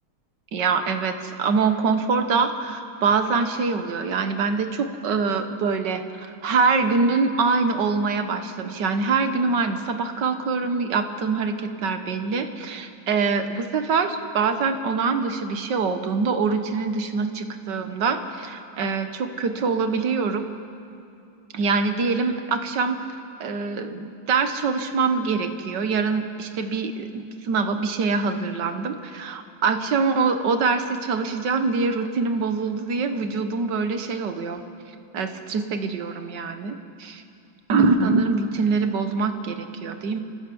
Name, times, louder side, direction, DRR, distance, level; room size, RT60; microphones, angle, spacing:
voice 1, 0.5-20.5 21.5-23.0 23.4-34.6 35.1-37.2 37.7-40.2, right 4 dB, 60° right, 8 dB, 1.7 m, -24 dB
28.5 x 14.5 x 6.9 m, 2.7 s
omnidirectional pair, 2.3 m